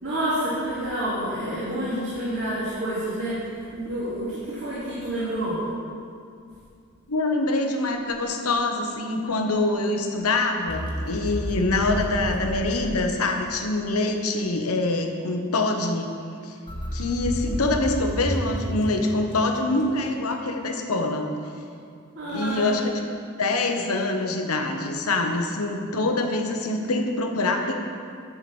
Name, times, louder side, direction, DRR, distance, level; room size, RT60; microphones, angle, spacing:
voice 1, 0.0-5.6 22.1-22.8, right 1 dB, 60° right, -10 dB, 2.5 m, -28 dB
voice 2, 7.1-16.1 16.4-16.5 16.9-21.3 22.3-23.0 23.4-27.7, left 2 dB, 80° left, 4 dB, 1.0 m, -25 dB
sound 1, 10.7-13.7 16.7-20.1, equal, 20° left, 1.3 m, -31 dB
10.5 x 4.8 x 7.1 m, 2.4 s
head